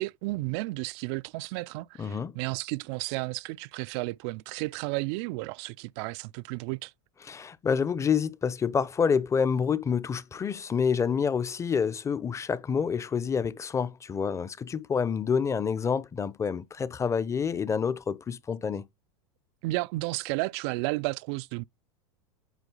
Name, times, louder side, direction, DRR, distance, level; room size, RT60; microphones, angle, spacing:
voice 1, 0.0-6.9 19.6-21.6, right 22 dB, 60° right, 0.4 m, -32 dB
voice 2, 2.0-2.3 7.2-18.9, left 6 dB, 20° left, 0.6 m, -28 dB
8.2 x 4.3 x 3.9 m
hypercardioid pair, 110°, 16 cm